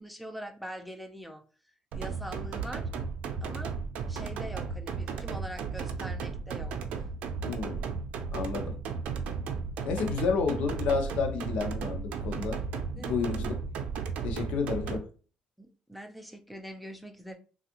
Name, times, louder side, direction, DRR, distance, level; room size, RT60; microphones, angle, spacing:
voice 1, 0.0-1.4 1.9-2.8 3.4-3.7 4.1-6.7 13.0-13.2 15.6-17.4, equal, ahead, 0.4 m, -42 dB
sound 1, 1.9-15.0, right 5 dB, 70° right, 0.5 m, -34 dB
voice 2, 7.4-7.8 8.3-8.8 9.8-12.6 12.9-13.5 14.2-15.1, left 5 dB, 70° left, 0.7 m, -30 dB
3.3 x 2.4 x 2.8 m
cardioid pair, 150°, 2 cm